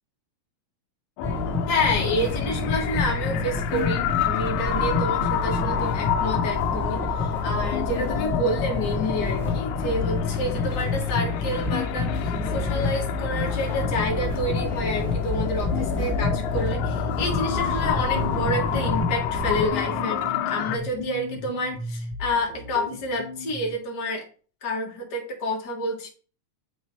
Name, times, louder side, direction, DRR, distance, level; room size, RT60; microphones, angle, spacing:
sound 1, 1.2-20.8, left 12 dB, 85° left, 2.1 m, -30 dB
sound 2, 1.2-19.7, left 2 dB, ahead, 2.2 m, -28 dB
voice 1, 1.7-24.2 24.6-26.1, left 1 dB, 40° left, 0 dB, 2.1 m, -29 dB
sound 3, 16.7-23.8, left 1 dB, 20° right, 1.0 m, -35 dB
9.5 x 3.8 x 4.3 m, 0.40 s
omnidirectional pair, 3.4 m